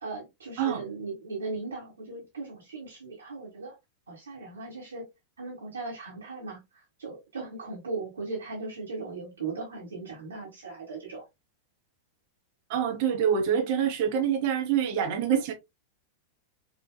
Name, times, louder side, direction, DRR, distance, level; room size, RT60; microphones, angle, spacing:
voice 1, 0.0-3.7 4.1-5.0 5.4-11.2, right 3 dB, 70° right, 1.5 m, -38 dB
voice 2, 12.7-15.5, right 8 dB, 50° right, 1.2 m, -26 dB
5.2 x 2.8 x 2.2 m
figure-of-eight pair, 90°, 0 cm